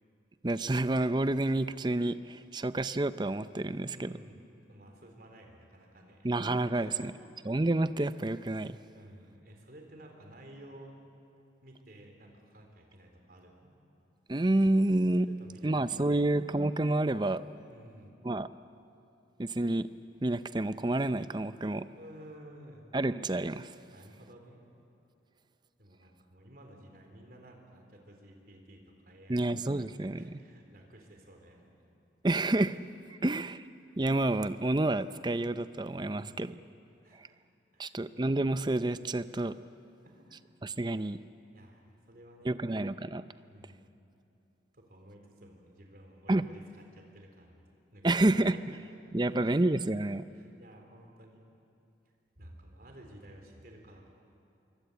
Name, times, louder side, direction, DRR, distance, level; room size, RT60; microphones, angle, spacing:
voice 1, 0.4-4.1 6.2-7.1 7.5-8.8 14.3-15.3 15.6-17.4 18.2-18.5 19.4-19.9 20.2-21.9 22.9-23.7 29.3-30.2 32.2-32.8 33.1-33.6 34.0-36.5 37.8-39.5 40.6-41.2 42.4-43.2 46.3-46.4 48.0-48.8 49.1-50.2, right 2 dB, 25° right, 13 dB, 0.5 m, -29 dB
voice 2, 3.6-6.3 6.7-7.3 8.9-11.0 11.6-13.7 15.3-16.5 17.7-18.2 22.0-22.9 23.9-24.6 25.8-29.4 29.8-31.9 33.1-33.3 36.0-36.5 37.0-37.4 37.7-38.0 40.0-40.4 41.5-42.9 43.4-44.0 44.7-46.6 46.9-49.6 50.3-51.4 52.4-54.1, right 1 dB, 50° right, 2 dB, 4.0 m, -54 dB
26.5 x 23.5 x 8.2 m, 2.7 s
head